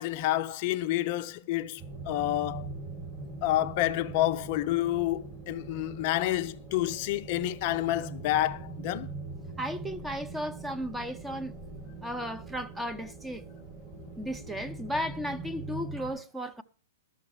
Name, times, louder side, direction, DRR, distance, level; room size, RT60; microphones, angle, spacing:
voice 1, 0.0-2.7 3.4-9.1, left 14 dB, 45° left, 0.6 m, -29 dB
sound 1, 1.8-16.1, right 3 dB, 25° right, 4.0 m, -42 dB
voice 2, 9.6-11.5 12.0-13.4 14.2-16.6, equal, 5° right, 0.8 m, -35 dB
13.0 x 6.4 x 7.0 m
hypercardioid pair, 120°, 0 cm